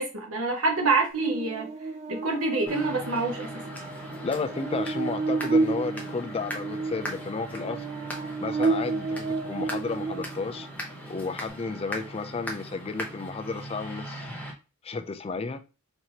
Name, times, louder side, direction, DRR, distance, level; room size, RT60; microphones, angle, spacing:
voice 1, 0.0-1.7 2.1-3.5, right 3 dB, 70° right, 1.1 m, -26 dB
Buzz, 1.2-10.7, right 3 dB, 30° right, 0.6 m, -31 dB
sound 1, 2.7-14.5, equal, 5° left, 0.8 m, -39 dB
voice 2, 4.2-7.8 8.4-10.7 11.1-14.3 14.8-15.6, left 4 dB, 25° left, 0.4 m, -32 dB
4.5 x 2.8 x 2.9 m
head